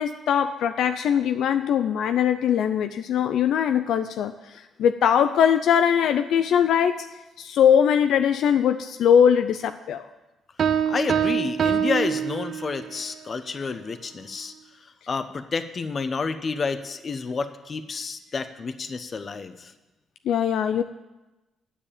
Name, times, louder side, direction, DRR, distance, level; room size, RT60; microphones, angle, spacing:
voice 1, 0.0-4.3 4.8-7.1 7.4-10.1 20.3-20.8, left 8 dB, 75° left, 8 dB, 0.5 m, -21 dB
sound 1, 10.6-13.0, right 8 dB, 55° right, 0.6 m, -24 dB
voice 2, 10.9-14.5 15.1-19.7, left 4 dB, 40° left, 10 dB, 0.9 m, -30 dB
10.0 x 7.0 x 8.6 m, 1.1 s
cardioid pair, 90°, 0 cm